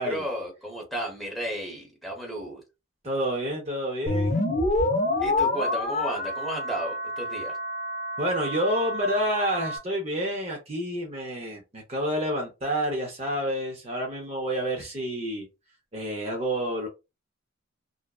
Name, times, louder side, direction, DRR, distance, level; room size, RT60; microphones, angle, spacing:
voice 1, 0.0-2.6 5.2-7.6, right 1 dB, ahead, 0.9 m, -33 dB
voice 2, 3.0-4.4 8.2-15.5 15.9-16.9, equal, 35° right, 0.6 m, -29 dB
sound 1, 4.1-9.8, left 2 dB, 35° left, 0.5 m, -28 dB
2.5 x 2.1 x 2.3 m
head